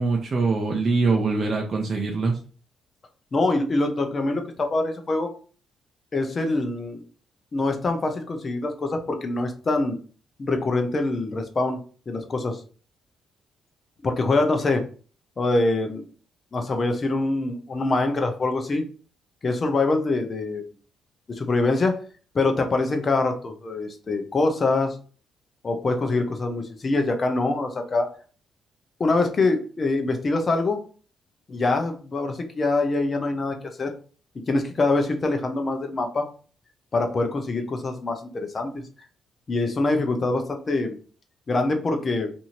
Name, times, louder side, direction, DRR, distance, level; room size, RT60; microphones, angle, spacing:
voice 1, 0.0-2.3, right 3 dB, 40° right, 0 dB, 0.5 m, -23 dB
voice 2, 3.3-5.3 6.1-7.0 7.5-10.0 10.4-11.8 12.1-12.6 14.0-14.8 15.4-16.0 16.5-18.8 19.4-20.6 21.3-22.0 22.3-25.0 25.6-28.1 29.0-30.8 31.5-33.9 34.5-36.3 36.9-38.8 39.5-41.0 41.5-42.3, left 2 dB, 35° left, 5 dB, 0.7 m, -24 dB
2.7 x 2.6 x 2.9 m, 0.39 s
cardioid pair, 90°, 0 cm